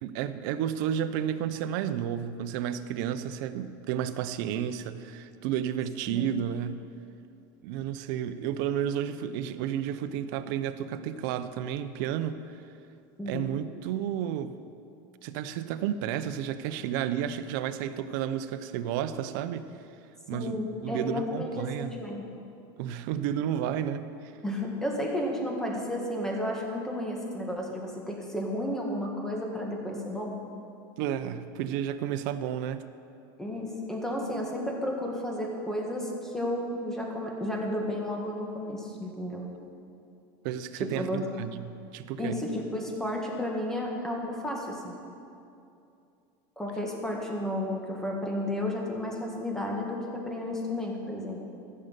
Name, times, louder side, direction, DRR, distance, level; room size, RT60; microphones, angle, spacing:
voice 1, 0.0-6.9 7.6-12.6 13.3-14.5 15.2-19.7 20.3-22.0 22.8-24.1 31.0-32.8 40.4-42.4, right 10 dB, 70° right, 11 dB, 0.7 m, -32 dB
voice 2, 13.2-13.5 20.3-22.3 24.4-30.4 33.4-39.5 40.8-41.2 42.2-44.9 46.6-51.4, left 1 dB, 5° left, -1 dB, 1.8 m, -32 dB
14.5 x 6.6 x 8.0 m, 2.6 s
supercardioid pair, 145°, 12 cm